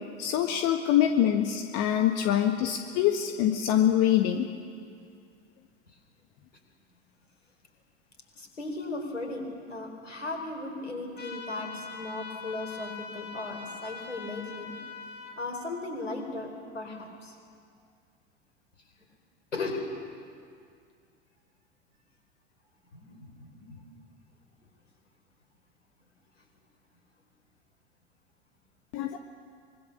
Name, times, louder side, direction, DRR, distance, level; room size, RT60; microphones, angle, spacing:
voice 1, 0.2-4.5 28.9-29.2, left 10 dB, 45° left, 5 dB, 1.5 m, -24 dB
voice 2, 8.4-14.7 15.4-17.4 19.5-19.8 22.9-23.8, left 2 dB, 85° left, 3 dB, 4.4 m, -37 dB
sound 1, 11.2-15.3, left 5 dB, 30° left, 3.6 m, -42 dB
25.0 x 22.0 x 7.0 m, 2.2 s
figure-of-eight pair, 80°, 36 cm